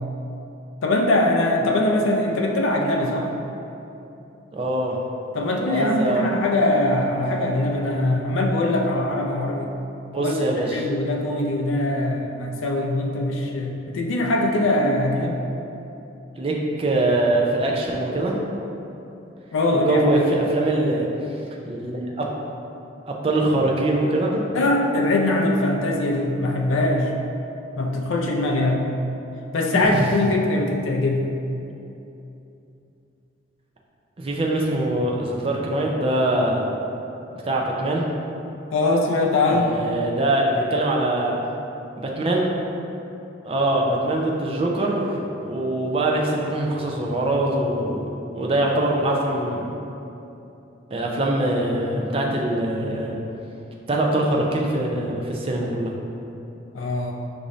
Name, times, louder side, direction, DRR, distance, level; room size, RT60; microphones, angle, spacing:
voice 1, 0.8-3.3 5.3-9.7 10.2-15.4 19.5-20.0 24.5-27.1 27.8-28.9 29.5-31.3 38.7-39.7 56.7-57.1, left 2 dB, 85° left, 1 dB, 0.4 m, -22 dB
voice 2, 4.5-5.0 5.7-6.3 10.1-10.9 16.4-18.4 19.7-21.1 21.7-22.3 23.1-24.4 29.7-30.2 34.2-36.7 37.4-38.1 39.5-41.4 42.0-42.5 43.4-48.0 48.3-49.6 50.9-53.2 53.9-55.9, right 1 dB, 30° right, -1 dB, 0.4 m, -23 dB
5.1 x 2.6 x 3.0 m, 2.9 s
head